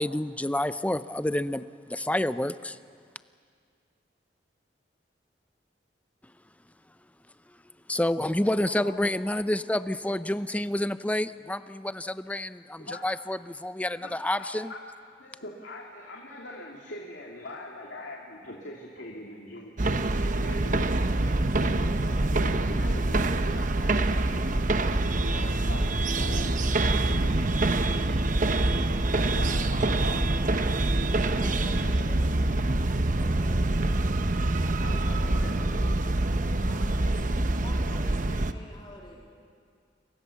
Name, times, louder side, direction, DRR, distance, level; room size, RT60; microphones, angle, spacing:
voice 1, 0.0-2.8 7.9-14.7, left 1 dB, 10° left, 13 dB, 0.6 m, -29 dB
voice 2, 8.6-9.6 10.1-10.6 12.8-13.1 13.9-14.8 15.2-21.1 21.6-27.3 29.1-30.8 31.6-32.3 34.8-35.9, left 1 dB, 90° left, -1 dB, 2.6 m, -43 dB
sound 1, 19.8-38.5, right 2 dB, 45° right, 0.9 m, -25 dB
sound 2, 23.8-35.5, equal, 10° right, 7.0 m, -50 dB
voice 3, 31.3-32.3 33.2-33.9 36.6-39.3, left 1 dB, 30° left, -1 dB, 3.1 m, -47 dB
29.0 x 24.5 x 7.2 m, 2.2 s
head